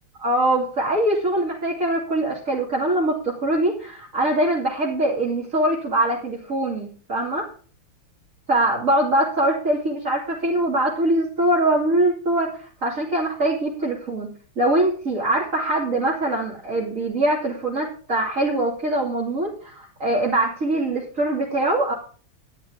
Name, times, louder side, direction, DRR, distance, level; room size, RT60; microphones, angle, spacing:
voice 1, 0.2-7.4 8.5-21.9, right 1 dB, 35° right, -4 dB, 3.1 m, -23 dB
12.5 x 10.5 x 3.7 m, 0.41 s
omnidirectional pair, 2.4 m